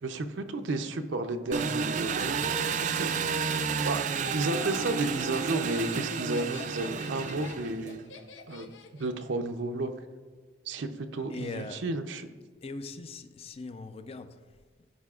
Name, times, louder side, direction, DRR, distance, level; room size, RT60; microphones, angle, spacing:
voice 1, 0.0-3.5 3.8-4.0 4.3-8.1 8.5-9.9 10.7-12.3, right 2 dB, 90° right, 0.6 m, -33 dB
Engine, 1.5-8.0, right 6 dB, 40° right, 0.3 m, -31 dB
Laughter, 4.0-9.2, left 5 dB, 85° left, 0.6 m, -45 dB
voice 2, 11.3-11.8 12.6-14.4, left 3 dB, 30° left, 0.4 m, -40 dB
15.0 x 5.1 x 2.4 m
head